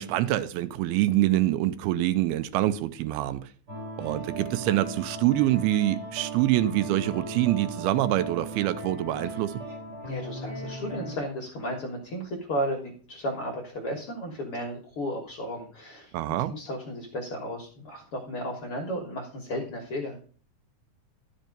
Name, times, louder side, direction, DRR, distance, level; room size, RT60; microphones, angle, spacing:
voice 1, 0.0-3.5 4.0-9.6 16.1-16.5, right 14 dB, 85° right, 2.5 m, -25 dB
sound 1, 3.7-11.2, right 2 dB, 30° right, 5.3 m, -37 dB
voice 2, 10.1-16.1 16.5-20.2, equal, 55° left, 1.6 m, -34 dB
12.0 x 5.5 x 5.1 m
omnidirectional pair, 4.5 m